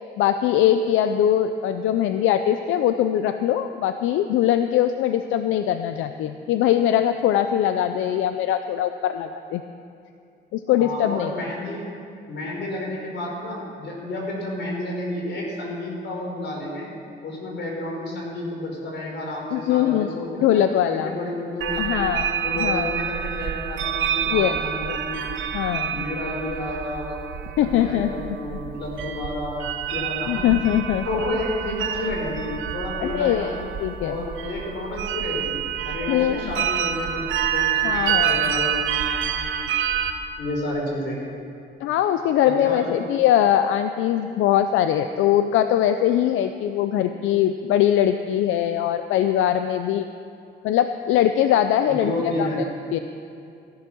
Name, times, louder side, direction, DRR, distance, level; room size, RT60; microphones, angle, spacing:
voice 1, 0.2-9.6 10.5-11.3 19.5-20.1 20.4-21.1 21.8-22.3 22.6-22.9 24.3-24.6 24.9-25.0 25.5-26.0 27.6-28.1 28.5-28.6 30.3-31.2 33.0-34.2 36.1-36.5 37.8-38.4 41.8-50.1 50.6-53.0, left 11 dB, 90° left, 9 dB, 0.5 m, -22 dB
voice 2, 10.8-12.0 12.3-16.9 17.2-22.1 22.4-25.3 25.9-30.5 31.0-33.5 34.0-39.7 40.4-41.3 42.4-42.9 51.9-52.6, left 1 dB, 65° left, -1 dB, 4.5 m, -31 dB
sound 1, 21.6-40.1, right 9 dB, 75° right, 1.0 m, -27 dB
16.0 x 11.0 x 6.3 m, 2.5 s
cardioid pair, 90°, 20 cm